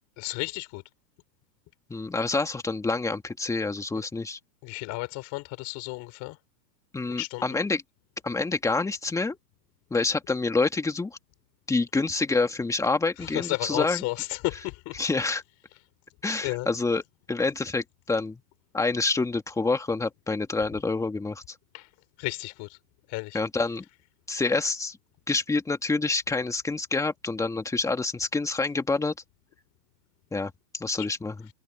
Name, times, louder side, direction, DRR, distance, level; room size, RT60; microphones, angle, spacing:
voice 1, 0.2-0.8 4.6-6.4 7.2-7.4 13.2-15.0 16.4-16.7 21.7-21.9 22.2-22.8 23.1-23.4 31.0-31.1, left 23 dB, 35° left, 3.7 m, -33 dB
voice 2, 1.9-4.4 6.9-7.8 8.2-9.4 9.9-11.2 11.7-14.0 14.9-15.4 16.2-17.0 17.3-18.4 18.7-21.4 23.3-23.8 24.3-25.0 25.3-29.1 30.3-31.5, left 3 dB, 5° left, 2.2 m, -27 dB
hypercardioid pair, 145°, 50 cm